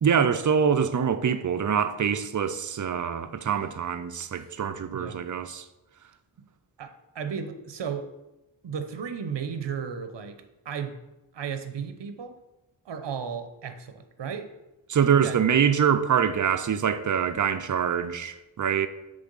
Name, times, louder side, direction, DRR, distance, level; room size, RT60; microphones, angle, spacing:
voice 1, 0.0-5.6 14.9-18.9, right 7 dB, 40° right, 0.5 m, -24 dB
voice 2, 6.8-8.1 8.6-11.0 11.3-12.4 12.9-14.5 15.0-15.4, right 7 dB, 60° right, 0.9 m, -34 dB
7.8 x 3.4 x 5.4 m
wide cardioid pair, 80°, 48 cm